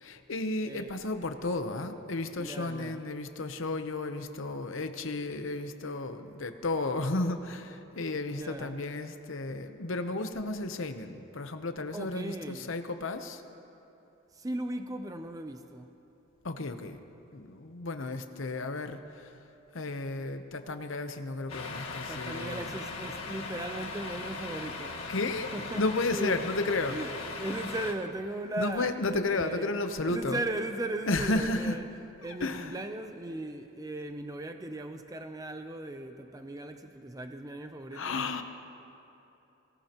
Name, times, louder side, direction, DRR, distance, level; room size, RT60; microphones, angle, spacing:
voice 1, 0.0-13.4 16.4-17.0 17.3-19.3 19.7-22.7 25.1-27.0 28.6-30.4 31.1-31.8 32.4-32.8 37.9-38.4, left 2 dB, 65° left, 8 dB, 0.8 m, -33 dB
voice 2, 0.6-1.0 2.4-3.0 8.3-8.8 11.9-12.7 14.3-15.9 22.1-25.2 25.5-25.8 26.1-26.5 26.9-27.1 27.4-29.7 30.0-31.8 32.2-38.2, right 1 dB, 15° right, 7 dB, 0.5 m, -37 dB
Truck, 21.5-27.9, left 3 dB, 90° left, 1.6 m, -39 dB
24.0 x 18.0 x 3.0 m, 2.9 s
head